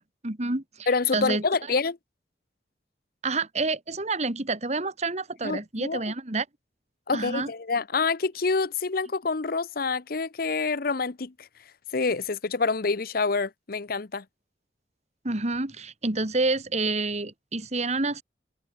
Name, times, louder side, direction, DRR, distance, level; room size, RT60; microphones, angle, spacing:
voice 1, 0.2-1.4 3.2-6.5 7.1-7.5 15.2-18.2, right 3 dB, 40° right, 2.0 m, -28 dB
voice 2, 0.9-2.0 5.4-6.0 7.1-11.5 11.9-14.2, left 4 dB, 55° left, 0.8 m, -27 dB
head